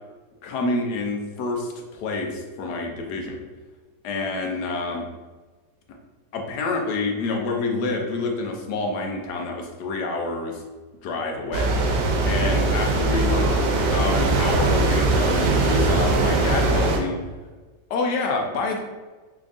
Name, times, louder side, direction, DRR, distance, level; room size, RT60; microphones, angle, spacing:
voice 1, 0.4-3.4 4.0-5.1 6.3-10.6 11.0-11.7 12.2-17.2 17.9-18.8, left 3 dB, 75° left, 2 dB, 1.2 m, -27 dB
sound 1, 11.5-17.0, right 2 dB, 85° right, 1.2 m, -21 dB
3.7 x 3.5 x 2.5 m, 1.3 s
omnidirectional pair, 1.9 m